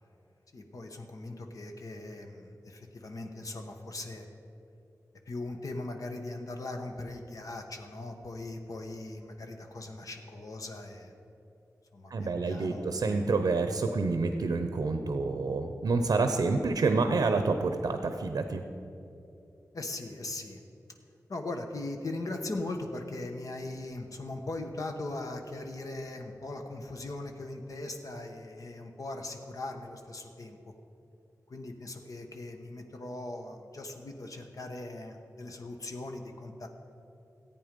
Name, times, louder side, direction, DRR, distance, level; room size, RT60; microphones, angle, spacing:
voice 1, 0.5-4.3 5.3-11.1 11.9-13.0 19.7-20.6 21.3-30.7 31.5-36.7, left 2 dB, 65° left, 4 dB, 1.1 m, -39 dB
voice 2, 12.1-18.6, right 3 dB, 90° right, 7 dB, 0.7 m, -28 dB
14.5 x 8.7 x 5.2 m, 2.7 s
wide cardioid pair, 90°, 6 cm